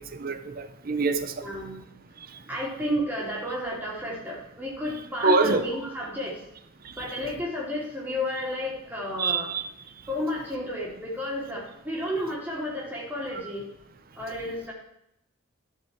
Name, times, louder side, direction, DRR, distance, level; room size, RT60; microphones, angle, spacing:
voice 1, 0.0-1.5 5.2-5.6 6.8-6.9 9.2-9.7, right 3 dB, 45° right, 0.8 m, -25 dB
voice 2, 1.4-1.8 2.5-6.5 6.9-9.5 10.1-13.6 14.1-14.7, left 1 dB, 10° right, 3.3 m, -32 dB
13.5 x 6.1 x 4.6 m
head